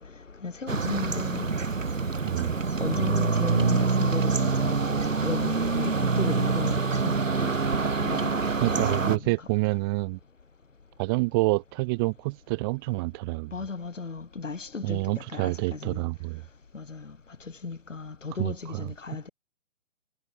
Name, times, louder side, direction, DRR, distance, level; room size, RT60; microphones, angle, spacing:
voice 1, 0.0-1.5 2.8-8.4 8.7-9.5 13.5-16.0 16.7-19.3, left 4 dB, 70° left, 2.9 m, -35 dB
sound 1, 0.7-9.2, right 4 dB, 80° right, 1.5 m, -26 dB
voice 2, 2.2-2.5 8.6-10.2 11.0-13.5 14.8-16.4 18.4-18.8, right 26 dB, 20° right, 1.3 m, -27 dB
figure-of-eight pair, 135°, 38 cm